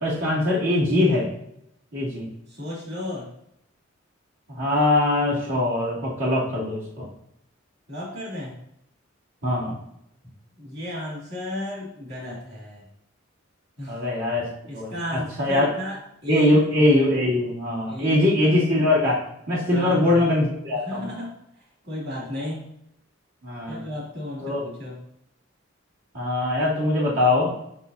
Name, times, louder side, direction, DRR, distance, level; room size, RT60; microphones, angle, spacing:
voice 1, 0.0-1.3 1.9-2.3 4.5-7.1 9.4-9.8 13.9-15.7 16.3-19.2 19.5-21.1 23.4-23.8 24.4-24.6 26.1-27.5, left 1 dB, 85° right, -7 dB, 2.6 m, -22 dB
voice 2, 2.5-3.3 7.9-8.5 10.6-12.9 13.8-14.0 14.7-16.0 16.2-16.9 17.9-18.6 19.7-20.2 20.8-21.3 21.8-22.6 23.7-25.0, left 1 dB, 55° right, -4 dB, 2.8 m, -34 dB
8.0 x 6.2 x 2.8 m, 0.75 s
head